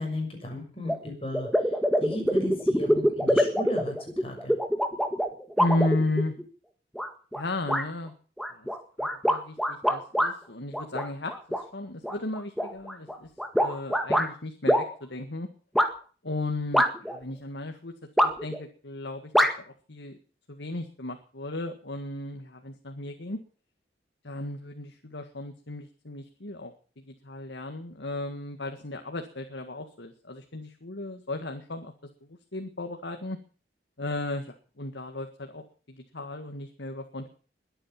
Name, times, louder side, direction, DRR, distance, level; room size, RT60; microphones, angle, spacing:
voice 1, 0.0-1.5 2.0-3.9 4.2-4.6, left 1 dB, 30° left, 3 dB, 6.5 m, -35 dB
sound 1, 0.9-1.0 1.3-6.4 7.0-7.4 7.7-7.9 8.4-10.3 10.7-11.6 12.0-14.3 14.7-14.9 15.8-15.9 16.7-17.2 18.2-18.6 19.3-19.5, equal, ahead, 1.7 m, -24 dB
voice 2, 5.6-6.3 7.3-8.1 8.5-8.7 9.0-13.3 13.6-15.5 16.2-17.9 18.2-19.3 19.6-20.2 20.5-23.4 24.2-31.9 32.2-33.4 34.0-37.3, left 2 dB, 80° left, 5 dB, 1.8 m, -35 dB
22.0 x 9.1 x 7.3 m, 0.41 s
head